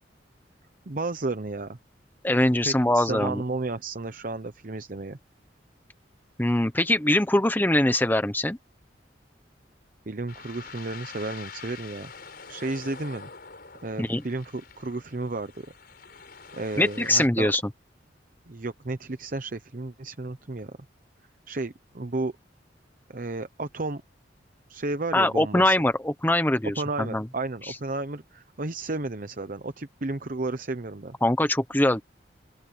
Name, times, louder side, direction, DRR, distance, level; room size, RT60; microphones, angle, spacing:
voice 1, 0.9-1.8 2.6-5.2 10.1-12.1 12.5-13.3 13.8-15.7 16.5-17.5 18.5-20.7 21.5-22.3 23.1-24.0 24.7-25.8 26.8-31.2, right 2 dB, 50° right, 0.9 m, -32 dB
voice 2, 2.2-3.4 6.4-8.6 14.0-14.2 16.8-17.6 25.1-27.3 31.2-32.0, left 1 dB, 10° left, 1.1 m, -22 dB
sound 1, 10.3-17.3, left 5 dB, 55° left, 5.4 m, -45 dB
open air
head